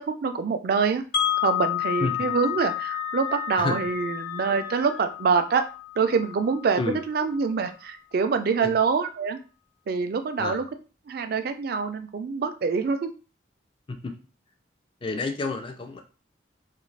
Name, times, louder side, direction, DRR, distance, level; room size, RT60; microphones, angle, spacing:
voice 1, 0.2-1.0 1.4-5.6 6.0-9.4 9.9-10.6 11.1-13.1, right 5 dB, 55° right, 8 dB, 0.3 m, -25 dB
Wind chime, 1.1-7.1, left 12 dB, 80° left, 0.7 m, -30 dB
Screaming, 1.8-5.1, right 1 dB, 55° left, 0.9 m, -43 dB
voice 2, 2.0-2.4 3.6-3.8 6.8-7.0 8.6-8.8 10.4-10.6 13.9-14.1 15.0-16.0, left 3 dB, 30° left, 5 dB, 0.3 m, -30 dB
2.4 x 2.3 x 3.2 m, 0.35 s
head